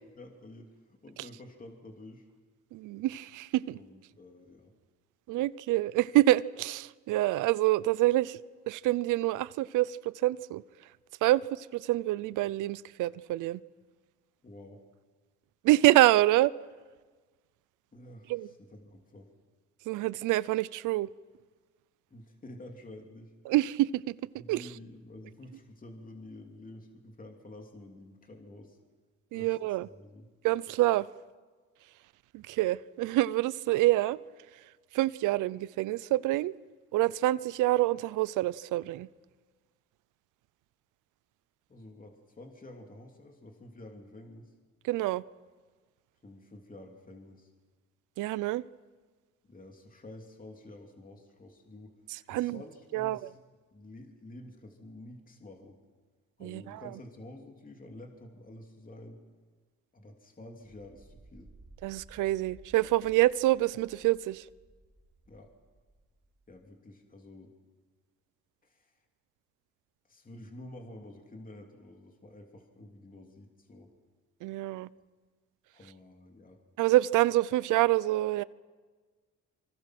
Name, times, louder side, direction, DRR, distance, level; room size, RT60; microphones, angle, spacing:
voice 1, 0.2-2.3 3.7-4.7 14.4-14.8 17.9-19.3 22.1-23.3 24.4-28.8 29.3-30.3 41.7-44.5 46.2-47.5 49.4-51.9 52.3-53.4 53.7-55.8 56.4-59.2 59.9-61.5 65.3-65.5 66.5-67.5 68.6-69.0 70.1-73.9 75.7-76.6, left 1 dB, 30° left, 3.0 m, -49 dB
voice 2, 2.7-3.8 5.3-8.4 8.7-10.6 11.2-13.6 15.6-16.5 18.3-18.5 19.9-21.1 23.5-24.1 24.5-24.7 29.3-29.9 30.4-31.1 32.3-34.2 34.9-36.5 36.9-39.1 44.9-45.2 48.2-48.6 52.1-52.6 52.9-53.2 56.4-56.8 61.8-64.4 74.4-74.9 76.8-78.4, right 16 dB, 90° right, 0.6 m, -26 dB
sound 1, 60.9-66.6, right 2 dB, 20° right, 3.0 m, -58 dB
27.0 x 25.0 x 6.1 m
cardioid pair, 90°, 30 cm